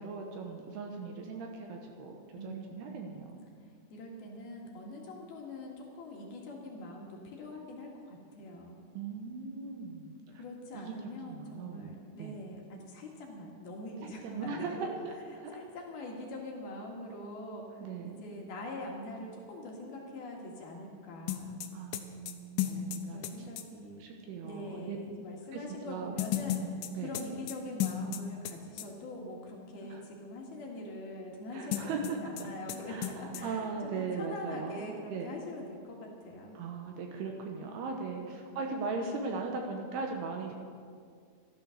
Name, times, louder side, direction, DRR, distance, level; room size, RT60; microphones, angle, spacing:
voice 1, 0.0-2.2 2.4-3.5 8.9-10.4 10.7-10.9 11.3-12.4 14.0-15.1 15.4-15.5 17.8-18.3 21.7-23.4 24.0-25.0 25.5-26.2 26.6-27.2 29.8-30.0 31.5-32.2 32.7-35.3 36.5-40.5, right 4 dB, 70° right, 2 dB, 2.8 m, -39 dB
voice 2, 2.4-2.8 3.9-8.8 10.4-14.9 15.3-21.6 23.1-24.1 24.4-36.6 38.5-38.7, left 1 dB, 60° left, -1 dB, 3.5 m, -43 dB
sound 1, 21.3-23.7 26.2-28.5 28.8-28.9 31.7-32.4 32.7-32.8 33.0-33.4, left 11 dB, 85° left, 3.1 m, -34 dB
14.0 x 12.5 x 6.5 m, 2.1 s
omnidirectional pair, 5.3 m